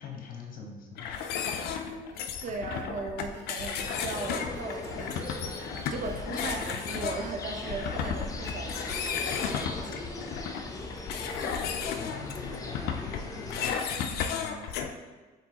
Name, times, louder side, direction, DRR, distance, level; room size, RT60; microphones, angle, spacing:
voice 1, 0.0-2.0 2.5-2.6 10.9-11.3 12.0-15.2, left 5 dB, 55° left, 1 dB, 1.0 m, -45 dB
sound 1, 1.0-14.9, left 7 dB, 70° left, 0.4 m, -34 dB
voice 2, 1.8-5.4 5.9-10.5, right 3 dB, 50° right, 5 dB, 0.5 m, -38 dB
sound 2, 2.1-2.8 3.2-7.6 8.0-9.4, right 3 dB, 85° right, 0.8 m, -51 dB
sound 3, 3.8-13.7, left 2 dB, 20° left, 0.6 m, -39 dB
4.5 x 3.9 x 2.8 m, 1.3 s
cardioid pair, 110°, 17 cm